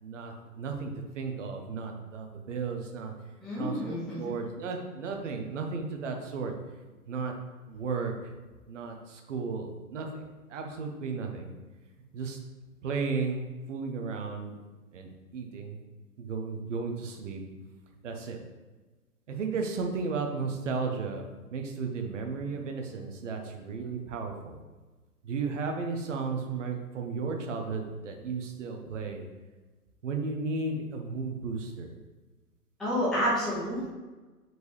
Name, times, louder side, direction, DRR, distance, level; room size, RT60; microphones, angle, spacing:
voice 1, 0.0-3.1 3.6-6.5 7.1-7.3 7.7-8.1 8.7-10.2 10.5-11.5 12.1-12.4 12.8-14.6 14.9-15.8 16.2-17.4 18.0-18.4 19.3-21.2 21.5-24.6 25.3-29.2 30.0-31.9, right 4 dB, 50° right, 3 dB, 1.2 m, -34 dB
voice 2, 3.4-4.3 32.8-33.9, equal, ahead, -9 dB, 0.8 m, -29 dB
8.0 x 4.7 x 3.3 m, 1.2 s
figure-of-eight pair, 125°, 47 cm